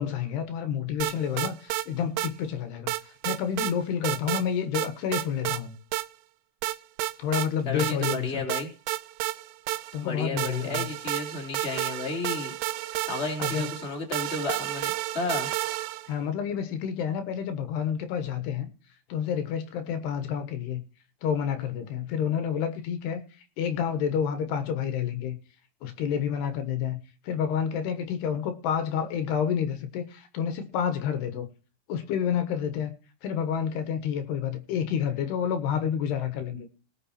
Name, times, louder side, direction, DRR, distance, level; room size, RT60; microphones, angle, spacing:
voice 1, 0.0-2.9 3.2-5.7 7.2-8.4 9.9-10.9 13.4-13.7 16.1-18.7 19.1-20.8 21.2-23.2 23.6-25.4 25.8-27.0 27.2-31.5 31.9-32.9 33.2-36.7, left 8 dB, 75° left, 9 dB, 3.3 m, -29 dB
sound 1, 1.0-1.9 2.2-2.3 2.9-3.7 4.0-4.5 4.8-5.6 5.9-6.1 6.6-7.5 7.8-8.2 8.5-10.1 10.4-16.1, right 17 dB, 90° right, 2.9 m, -31 dB
voice 2, 7.6-8.7 10.0-12.5 13.1-15.5, left 3 dB, 15° left, 1 dB, 3.0 m, -33 dB
19.0 x 6.7 x 4.2 m, 0.36 s
omnidirectional pair, 4.8 m